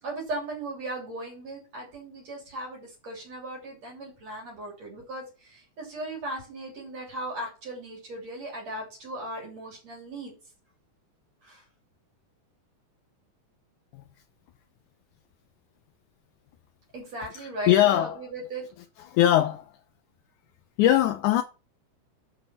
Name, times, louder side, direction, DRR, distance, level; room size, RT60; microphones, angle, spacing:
voice 1, 0.0-10.3 11.4-11.6 16.9-18.6, right 1 dB, 55° right, 4.3 m, -37 dB
voice 2, 17.3-18.3 19.0-19.7 20.8-21.4, left 13 dB, 80° left, 2.1 m, -21 dB
7.7 x 6.6 x 5.6 m
omnidirectional pair, 3.7 m